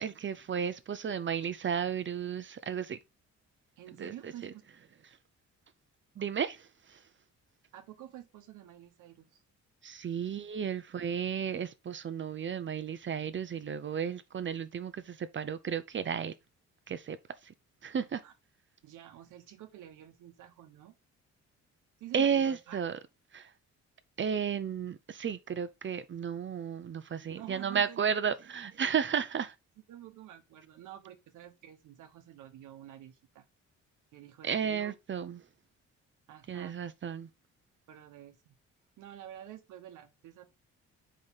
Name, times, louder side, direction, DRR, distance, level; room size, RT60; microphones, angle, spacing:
voice 1, 0.0-3.0 4.0-4.5 6.2-7.0 9.8-16.3 16.9-17.2 17.4-17.5 17.8-18.2 22.1-23.0 23.3-23.5 24.2-29.5 34.4-35.4 36.5-37.3, right 7 dB, 40° right, 0.7 m, -33 dB
voice 2, 3.8-4.6 7.7-9.4 18.2-18.3 18.8-20.9 22.0-22.9 27.2-28.1 29.9-33.4 34.1-34.9 36.3-36.8 37.9-38.5 39.0-40.5, right 12 dB, 85° right, 1.0 m, -49 dB
6.1 x 5.1 x 4.0 m
cardioid pair, 90°, 30 cm